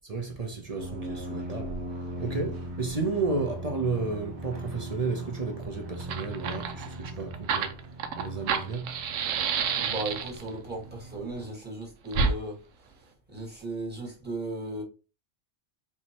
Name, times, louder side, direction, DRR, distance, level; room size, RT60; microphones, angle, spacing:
voice 1, 0.0-1.8 2.2-7.9 8.2-9.0, right 4 dB, 40° right, 0.6 m, -32 dB
sound 1, 0.8-11.5, right 1 dB, 60° right, 1.0 m, -40 dB
Fire, 5.6-5.7 5.9-10.5 12.1-12.3, right 6 dB, 90° right, 1.0 m, -29 dB
voice 2, 9.7-12.6 13.3-14.8, right 2 dB, 10° right, 1.6 m, -36 dB
4.7 x 2.8 x 2.9 m
omnidirectional pair, 1.3 m